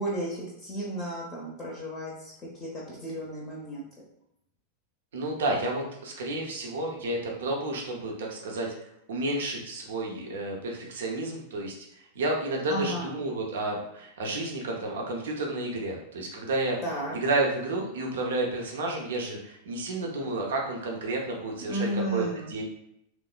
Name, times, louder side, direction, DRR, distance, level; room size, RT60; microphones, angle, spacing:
voice 1, 0.0-3.8 12.7-13.1 16.8-17.1 21.7-22.5, right 1 dB, 25° left, -3 dB, 0.6 m, -33 dB
voice 2, 5.1-8.7 9.1-11.8 12.2-16.8 17.1-22.6, right 2 dB, 60° right, 0 dB, 0.5 m, -31 dB
3.0 x 2.0 x 2.3 m, 0.77 s
figure-of-eight pair, 90°, 0 cm